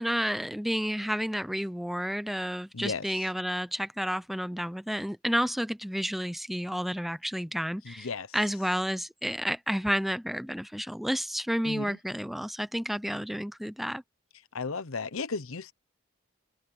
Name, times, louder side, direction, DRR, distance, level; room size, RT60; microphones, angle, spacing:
voice 1, 0.0-8.1 8.3-14.0, equal, ahead, 0.5 m, -31 dB
voice 2, 2.7-3.0 7.8-8.3 11.6-12.0 14.5-15.7, left 4 dB, 90° left, 0.9 m, -34 dB
open air
head